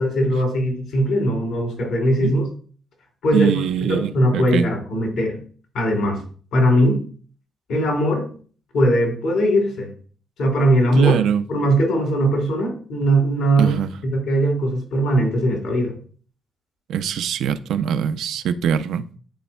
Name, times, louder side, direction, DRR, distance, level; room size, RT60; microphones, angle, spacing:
voice 1, 0.0-2.4 3.2-3.5 3.9-5.4 5.7-6.2 6.5-7.0 7.7-8.3 8.7-9.9 10.4-11.2 11.5-13.8 14.1-15.9, right 1 dB, 80° left, 3.2 m, -20 dB
voice 2, 3.3-4.7 10.9-11.4 13.6-13.9 16.9-19.0, right 8 dB, 75° right, 0.4 m, -22 dB
11.5 x 4.2 x 2.2 m
cardioid pair, 90°, 0 cm